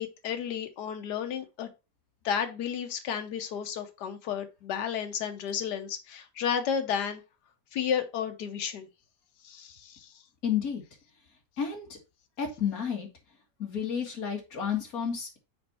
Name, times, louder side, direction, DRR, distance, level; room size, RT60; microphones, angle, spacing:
voice 1, 0.0-1.7 2.2-7.2 7.7-8.9 9.4-10.1, left 8 dB, 80° left, 1.5 m, -32 dB
voice 2, 10.4-10.8 11.6-12.0 12.4-13.1 13.6-15.4, left 7 dB, 60° left, 2.4 m, -31 dB
6.5 x 4.4 x 4.3 m
omnidirectional pair, 1.8 m